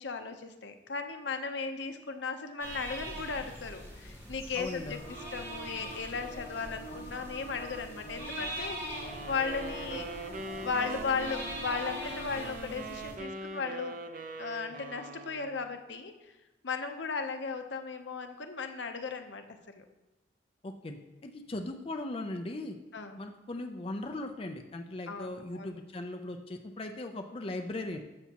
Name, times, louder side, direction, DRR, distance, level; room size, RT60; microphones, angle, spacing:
voice 1, 0.0-10.3 10.6-14.0 14.4-16.1 16.6-19.4 19.7-19.8 22.9-23.2 25.1-25.8, left 5 dB, 80° left, 6 dB, 0.8 m, -36 dB
sound 1, 2.6-13.2, right 1 dB, 15° right, 2.2 m, -43 dB
voice 2, 4.5-5.0 20.6-22.8 23.2-28.0, left 2 dB, 30° left, 5 dB, 0.5 m, -38 dB
sound 2, 4.9-12.3, right 1 dB, 55° left, 3.3 m, -46 dB
sound 3, 8.9-15.7, right 2 dB, 50° right, 0.6 m, -42 dB
12.5 x 7.1 x 2.9 m, 1.0 s
head